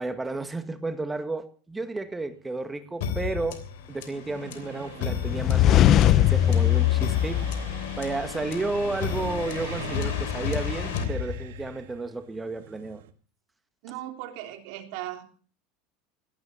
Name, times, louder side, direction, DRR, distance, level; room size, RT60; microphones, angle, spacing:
voice 1, 0.0-3.6 3.9-13.0, right 3 dB, 10° right, 9 dB, 1.8 m, -32 dB
sound 1, 1.9-13.1, right 11 dB, 90° right, 1.7 m, -44 dB
sound 2, 3.0-11.8, left 7 dB, 80° left, 3.1 m, -33 dB
sound 3, 5.3-8.3, left 12 dB, 45° left, 0.7 m, -20 dB
voice 2, 13.8-15.2, right 14 dB, 70° right, 5 dB, 3.3 m, -37 dB
17.0 x 12.5 x 5.7 m, 0.42 s
supercardioid pair, 125°, 0 cm